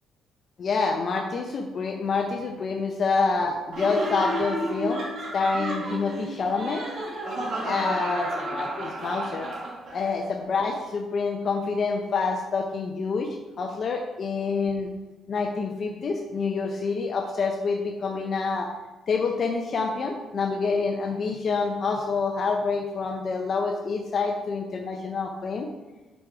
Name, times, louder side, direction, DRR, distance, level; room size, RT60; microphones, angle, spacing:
voice 1, 0.6-5.0 5.3-6.9 7.6-9.5 9.9-14.9 15.3-18.7 19.1-25.7, left 4 dB, 50° left, 3 dB, 0.7 m, -27 dB
Laughter, 3.7-10.1, right 1 dB, 50° right, 2.0 m, -32 dB
6.3 x 5.1 x 4.6 m, 1.1 s
cardioid pair, 90°, 0 cm